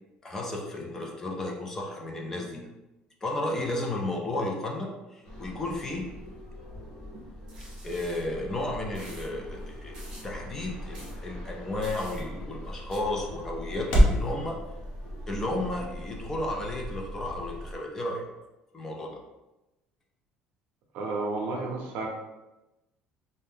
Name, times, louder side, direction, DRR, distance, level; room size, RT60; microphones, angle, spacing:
voice 1, 0.2-2.6 3.2-6.1 7.8-10.0 10.2-14.6 15.3-18.3 18.7-19.2, left 2 dB, 15° left, 0 dB, 0.4 m, -33 dB
sound 1, 5.2-17.8, equal, 35° left, 0.9 m, -41 dB
sound 2, 7.5-8.2 8.9-9.3 9.9-10.3 10.9-11.1 11.8-12.2 12.9-13.0, right 1 dB, 30° right, 0.8 m, -48 dB
sound 3, 8.0-14.3, equal, 80° left, 0.8 m, -30 dB
voice 2, 20.9-22.1, right 3 dB, 60° right, 1 dB, 0.6 m, -32 dB
2.7 x 2.1 x 3.5 m, 1.0 s
cardioid pair, 170°, 3 cm